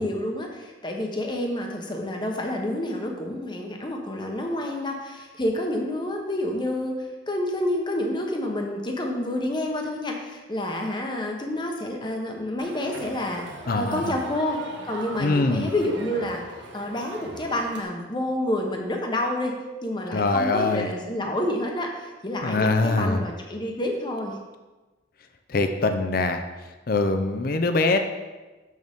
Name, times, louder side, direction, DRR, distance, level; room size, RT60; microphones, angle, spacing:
voice 1, 0.0-13.4 13.7-14.6 14.9-16.4 16.7-24.4, left 1 dB, 25° left, 1 dB, 0.9 m, -28 dB
Crowd, 12.6-17.8, right 2 dB, 85° right, 1.3 m, -40 dB
voice 2, 13.7-14.1 15.2-15.7 20.1-20.9 22.4-23.2 25.5-26.4 26.9-28.0, left 3 dB, 50° left, 7 dB, 0.5 m, -23 dB
6.9 x 6.4 x 3.6 m, 1.2 s
head